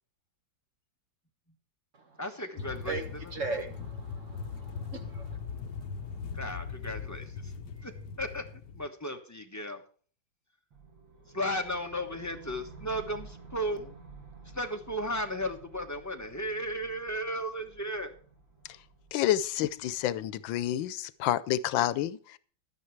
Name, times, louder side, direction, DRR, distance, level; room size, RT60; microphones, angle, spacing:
voice 1, 2.2-3.0 6.3-7.2 7.8-7.9 8.2-8.4 8.7-9.8 11.3-13.9 14.5-18.1, equal, 15° left, 4 dB, 0.8 m, -34 dB
sound 1, 2.6-8.9, left 5 dB, 70° left, 1.4 m, -40 dB
voice 2, 3.3-5.4, right 3 dB, 45° right, 6 dB, 1.6 m, -37 dB
sound 2, 10.7-20.8, right 3 dB, 85° right, 3.0 m, -52 dB
voice 3, 19.1-22.4, left 12 dB, 85° left, 17 dB, 1.4 m, -29 dB
11.5 x 9.7 x 4.6 m, 0.43 s
omnidirectional pair, 2.0 m